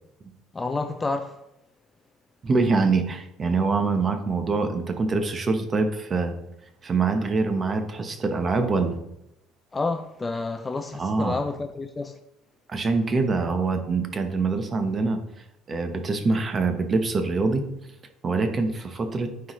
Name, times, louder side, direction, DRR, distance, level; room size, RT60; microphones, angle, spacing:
voice 1, 0.5-1.4 9.7-12.2, left 3 dB, 15° left, 0.4 m, -29 dB
voice 2, 2.4-6.3 6.8-9.0 11.0-11.4 12.7-15.2 15.7-17.7 18.2-19.3, right 3 dB, 25° right, 0.9 m, -24 dB
13.5 x 4.7 x 3.1 m
cardioid pair, 160°, 0 cm